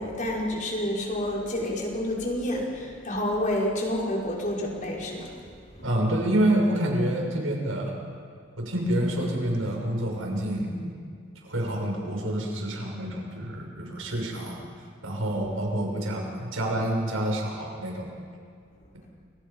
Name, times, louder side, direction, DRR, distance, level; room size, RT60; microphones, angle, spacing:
voice 1, 0.0-5.3, left 1 dB, 40° left, -2 dB, 5.4 m, -29 dB
voice 2, 5.8-7.9 8.6-10.9 11.4-14.6 15.0-18.1, right 1 dB, 85° right, 0 dB, 6.7 m, -27 dB
29.0 x 27.0 x 5.6 m, 2.1 s
head